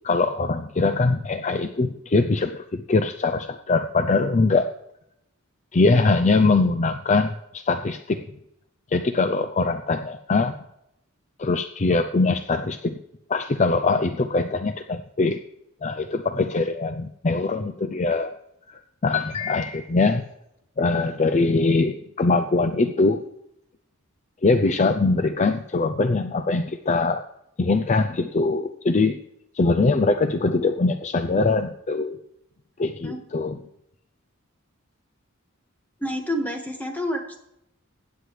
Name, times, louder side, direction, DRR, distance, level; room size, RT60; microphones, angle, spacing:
voice 1, 0.0-4.7 5.7-8.2 8.9-10.6 11.4-13.0 13.3-15.4 15.8-18.4 18.7-20.2 20.8-23.3 24.4-27.2 27.6-29.2 29.5-32.2 32.8-33.5, left 3 dB, 35° left, 8 dB, 0.5 m, -22 dB
voice 2, 36.0-37.4, equal, 10° left, 3 dB, 1.7 m, -29 dB
16.0 x 9.5 x 3.3 m, 0.80 s
head